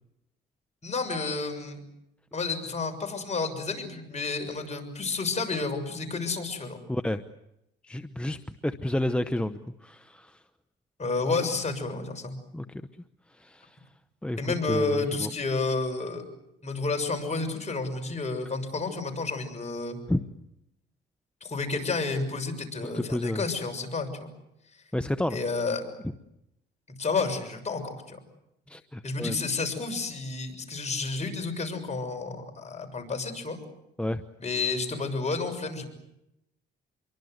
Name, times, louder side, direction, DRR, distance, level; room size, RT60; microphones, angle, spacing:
voice 1, 0.8-1.8 2.3-6.8 11.0-12.4 14.4-16.3 16.6-20.0 21.4-24.3 25.3-25.8 27.0-28.2 29.0-33.6 34.4-35.9, left 3 dB, 35° left, 4 dB, 6.8 m, -30 dB
voice 2, 6.9-7.2 7.8-10.4 12.5-12.8 13.4-13.8 14.2-14.4 14.7-15.3 20.1-20.2 22.8-23.4 24.9-25.4 28.7-29.4 34.0-34.2, left 1 dB, 5° left, 9 dB, 1.0 m, -30 dB
27.0 x 23.5 x 8.0 m, 0.85 s
cardioid pair, 90°, 20 cm